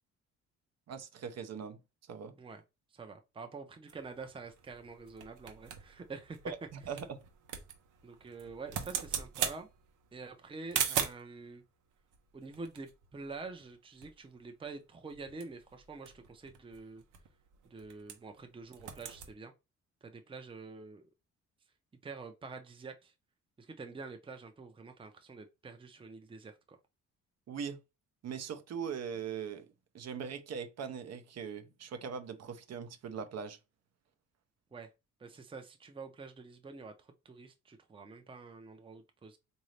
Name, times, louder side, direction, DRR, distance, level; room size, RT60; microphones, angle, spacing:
voice 1, 0.9-1.8 2.1-2.3 6.4-7.2 27.5-27.8 28.2-29.7 29.9-33.6, right 6 dB, 60° right, 0.7 m, -40 dB
voice 2, 2.9-6.5 6.8-7.0 8.0-9.7 10.1-11.6 12.3-17.0 17.6-19.5 20.0-21.1 22.0-23.1 23.6-26.8 34.7-34.9 35.2-39.4, right 4 dB, 15° right, 0.6 m, -47 dB
sound 1, 3.9-11.3 12.1-13.8 14.0-14.1 14.4-14.7 15.1-18.4 18.7-19.3, right 8 dB, 85° right, 0.9 m, -40 dB
3.9 x 2.7 x 3.2 m
cardioid pair, 90°, 30 cm